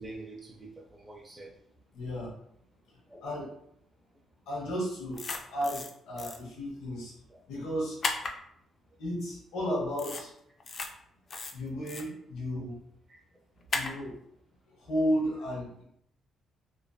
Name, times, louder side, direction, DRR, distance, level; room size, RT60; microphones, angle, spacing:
voice 1, 0.0-1.6 3.1-3.2 7.3-7.4 12.5-12.6 13.1-13.2, right 2 dB, 10° right, -3 dB, 0.6 m, -46 dB
voice 2, 1.9-2.3 2.9-3.5 4.5-5.2 5.5-7.1 7.5-8.0 9.0-10.3 11.5-12.8 13.7-14.2 14.7-15.8, equal, 85° left, -3 dB, 0.9 m, -33 dB
sound 1, 5.1-5.9 6.2-6.4 8.0-8.3 10.0-10.2 10.6-10.9 11.3-12.0 13.7-13.9, left 3 dB, 45° left, 0.4 m, -34 dB
2.5 x 2.4 x 2.2 m, 0.70 s
cardioid pair, 90°, 0 cm